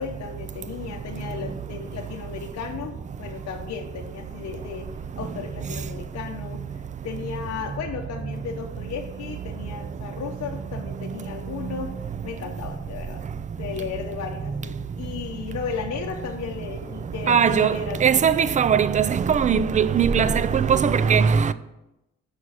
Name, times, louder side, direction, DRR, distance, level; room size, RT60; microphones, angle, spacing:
voice 1, 0.0-6.6 7.0-11.9 12.2-13.2 13.6-18.3, left 6 dB, 55° left, 0.8 m, -35 dB
voice 2, 17.3-21.5, right 7 dB, 25° right, 0.3 m, -20 dB
6.3 x 4.8 x 5.5 m
cardioid pair, 90°, 30 cm